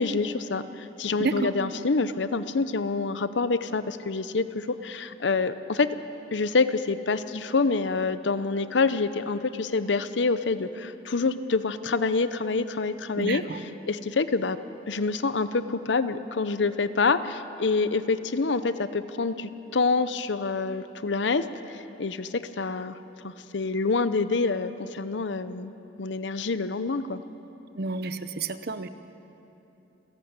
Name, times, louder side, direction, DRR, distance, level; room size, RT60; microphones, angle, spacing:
voice 1, 0.0-5.9 6.3-13.4 13.9-14.6 14.9-23.0 23.2-25.7 26.0-27.2, left 4 dB, 75° left, 13 dB, 0.7 m, -27 dB
voice 2, 1.2-1.5 13.2-13.6 27.7-28.9, right 3 dB, 60° right, 11 dB, 0.8 m, -30 dB
27.5 x 11.5 x 8.1 m, 3.0 s
head